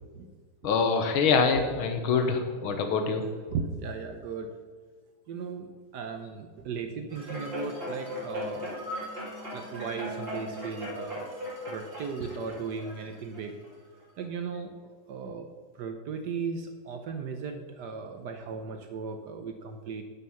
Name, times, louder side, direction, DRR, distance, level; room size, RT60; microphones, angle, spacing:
voice 1, 0.6-3.3, left 5 dB, 80° left, 6 dB, 1.8 m, -25 dB
voice 2, 1.5-1.9 2.5-2.6 3.4-4.5 5.3-8.7 9.5-11.3 11.7-13.5 14.2-14.7 15.1-15.5 15.8-20.0, right 5 dB, 65° right, 6 dB, 1.1 m, -36 dB
sound 1, 7.1-13.7 14.2-14.3, left 1 dB, 25° right, 2.8 m, -38 dB
9.0 x 6.3 x 5.6 m, 1.5 s
omnidirectional pair, 2.3 m